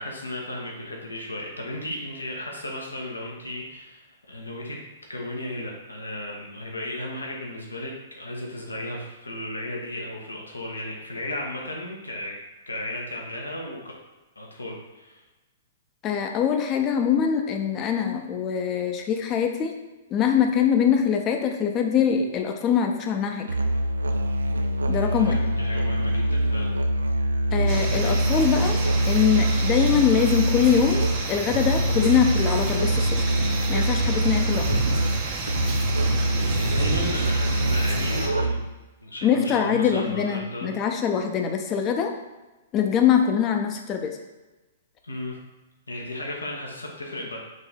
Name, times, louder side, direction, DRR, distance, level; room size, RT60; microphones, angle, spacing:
voice 1, 0.0-4.8 5.1-12.3 12.7-13.8 14.4-15.2 25.2-26.8 36.3-38.6 39.0-40.7 45.0-45.3 45.9-47.4, left 1 dB, 90° left, -1 dB, 0.9 m, -34 dB
voice 2, 16.0-19.7 20.1-23.5 24.9-25.4 27.5-28.8 29.1-33.2 33.7-34.7 39.2-42.1 42.7-44.2, left 8 dB, 30° left, 4 dB, 0.6 m, -23 dB
Musical instrument, 23.5-38.8, right 1 dB, 85° right, 0.3 m, -24 dB
sound 1, 27.7-38.3, right 3 dB, 45° right, 0.8 m, -30 dB
5.2 x 2.6 x 3.5 m, 1.1 s
hypercardioid pair, 115°, 0 cm